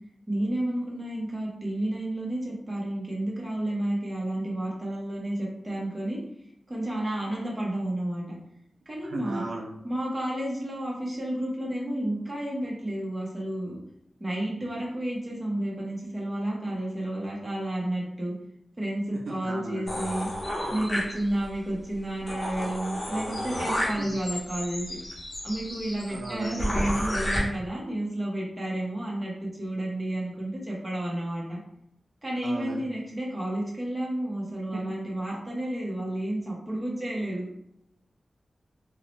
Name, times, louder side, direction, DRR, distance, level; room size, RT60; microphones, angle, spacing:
voice 1, 0.3-6.2 6.7-8.4 8.9-9.4 9.8-13.8 14.2-18.3 18.8-20.3 20.7-24.9 25.4-31.6 32.2-37.5, right 1 dB, 20° right, -4 dB, 0.8 m, -31 dB
voice 2, 9.0-9.8 19.3-19.8 24.0-24.1 26.1-26.7 32.4-32.8 34.7-34.8, right 3 dB, 85° right, 0 dB, 0.4 m, -36 dB
sound 1, 19.9-21.5 21.9-22.0 22.3-27.4, equal, 40° left, 0.7 m, -32 dB
2.6 x 2.0 x 3.0 m, 0.76 s
wide cardioid pair, 140°, 0 cm